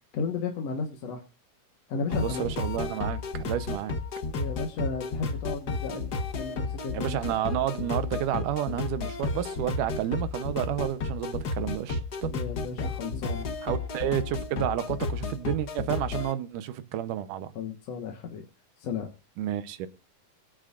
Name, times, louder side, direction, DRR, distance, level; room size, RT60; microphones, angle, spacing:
voice 1, 0.1-1.2 1.9-2.4 4.3-6.1 6.3-7.2 12.3-13.5 17.6-18.5 18.8-19.1, left 4 dB, 60° left, 2.3 m, -34 dB
sound 1, 2.1-16.3, left 3 dB, 80° left, 0.9 m, -32 dB
voice 2, 2.2-4.0 6.9-12.3 13.6-17.5 19.4-19.9, right 12 dB, 80° right, 2.4 m, -30 dB
24.5 x 8.9 x 2.5 m
omnidirectional pair, 3.6 m